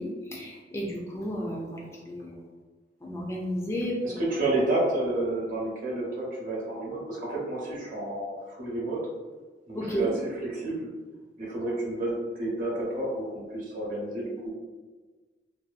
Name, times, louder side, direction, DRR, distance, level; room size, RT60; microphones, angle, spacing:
voice 1, 0.0-2.4 3.0-4.0 9.7-10.1, equal, 15° left, -3 dB, 0.3 m, -32 dB
voice 2, 4.0-9.0 9.7-10.9 11.4-14.5, right 2 dB, 50° right, -4 dB, 0.8 m, -30 dB
2.6 x 2.2 x 2.4 m, 1.4 s
head